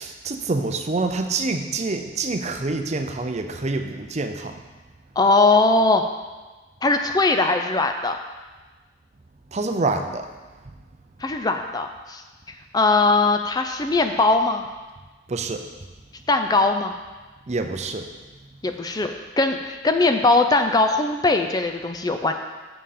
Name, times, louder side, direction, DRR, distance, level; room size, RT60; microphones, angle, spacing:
voice 1, 0.0-4.6 9.5-10.3 15.3-15.6 17.5-18.1, right 3 dB, 35° right, 6 dB, 0.6 m, -26 dB
voice 2, 5.2-6.0 6.8-8.2 11.2-12.2 12.7-14.6 16.3-16.9 18.6-22.3, left 3 dB, 20° left, 6 dB, 0.4 m, -20 dB
6.9 x 5.7 x 6.5 m, 1.3 s
head